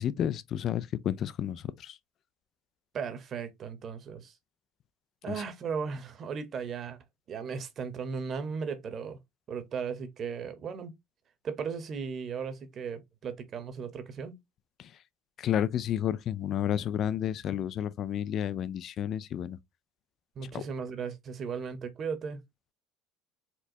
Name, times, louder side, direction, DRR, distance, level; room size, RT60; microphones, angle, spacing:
voice 1, 0.0-2.0 5.3-5.4 14.8-14.9 15.4-19.6 20.5-20.6, left 10 dB, 50° left, 0.3 m, -31 dB
voice 2, 2.9-4.3 5.2-7.0 7.3-9.2 9.5-10.9 11.4-14.3 20.4-22.4, right 6 dB, 45° right, 0.9 m, -36 dB
4.3 x 2.1 x 2.7 m
supercardioid pair, 90°, 0 cm